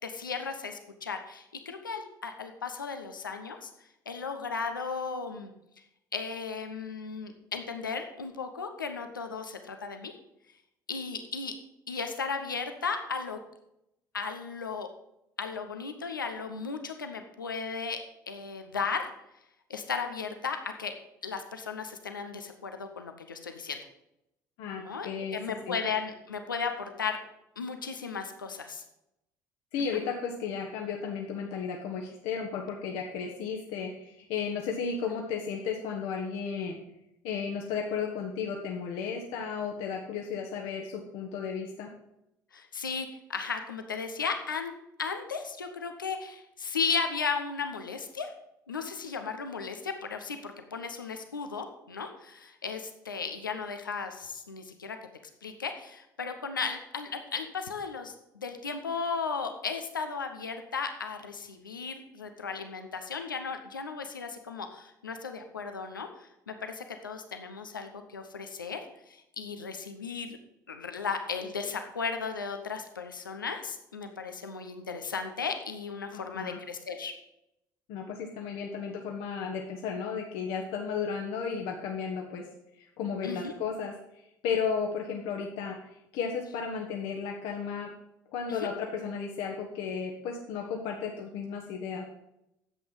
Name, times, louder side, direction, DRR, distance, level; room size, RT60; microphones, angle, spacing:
voice 1, 0.0-3.7 4.1-5.5 6.1-10.1 10.9-11.5 11.9-13.4 14.1-14.9 15.4-18.0 18.3-19.1 19.7-20.9 21.2-23.8 24.8-27.2 27.6-28.8 42.5-44.7 45.0-48.3 48.7-55.0 55.4-68.8 69.1-70.4 70.7-77.1 83.2-83.5 88.5-88.6, left 5 dB, 90° left, 6 dB, 0.9 m, -35 dB
voice 2, 24.6-25.4 25.7-25.8 29.7-36.8 37.2-41.9 76.1-76.6 77.9-82.5 82.8-83.9 84.4-87.9 88.3-92.0, left 6 dB, 60° left, 1 dB, 1.3 m, -34 dB
10.0 x 7.9 x 5.5 m, 0.84 s
figure-of-eight pair, 60°, 11 cm